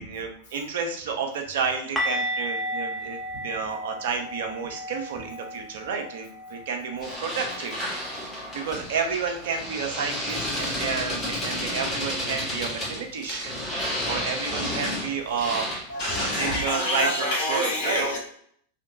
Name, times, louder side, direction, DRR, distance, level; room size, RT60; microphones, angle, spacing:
voice 1, 0.0-7.9 8.5-13.6 14.0-15.7 16.3-18.1, right 5 dB, 55° right, 4 dB, 0.5 m, -30 dB
sound 1, 2.0-7.7 8.0-8.2 8.6-8.7 12.0-12.1, equal, ahead, 0.5 m, -34 dB
sound 2, 7.0-17.2, left 1 dB, 20° left, 1.1 m, -31 dB
voice 2, 15.9-18.2, left 1 dB, 55° left, -1 dB, 0.9 m, -27 dB
2.7 x 2.1 x 2.5 m, 0.63 s
figure-of-eight pair, 90°, 0 cm